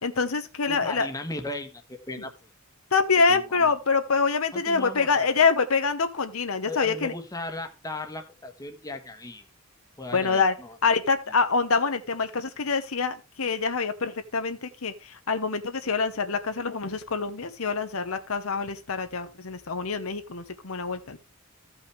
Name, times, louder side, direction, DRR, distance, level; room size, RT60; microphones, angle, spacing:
voice 1, 0.0-1.1 2.9-7.1 10.1-10.5 10.8-21.2, left 4 dB, 70° left, 1.0 m, -25 dB
voice 2, 0.7-2.3 3.3-3.7 4.5-5.2 6.7-9.4 10.0-10.8, left 2 dB, 15° left, 1.3 m, -37 dB
15.0 x 5.6 x 3.4 m
head